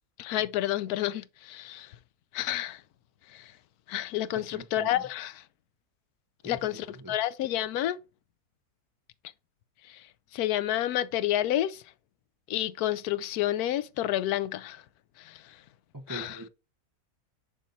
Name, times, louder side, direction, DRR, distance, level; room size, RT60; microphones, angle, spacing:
voice 1, 0.2-2.0 2.3-2.8 3.3-3.5 3.9-5.4 6.4-8.0 9.8-10.1 10.3-11.8 12.5-14.8 15.2-15.6 16.1-16.4, left 13 dB, 80° left, 1.1 m, -30 dB
voice 2, 4.3-5.1 6.4-7.1 15.9-16.5, right 1 dB, 15° right, 1.0 m, -43 dB
7.3 x 5.5 x 2.7 m
omnidirectional pair, 1.6 m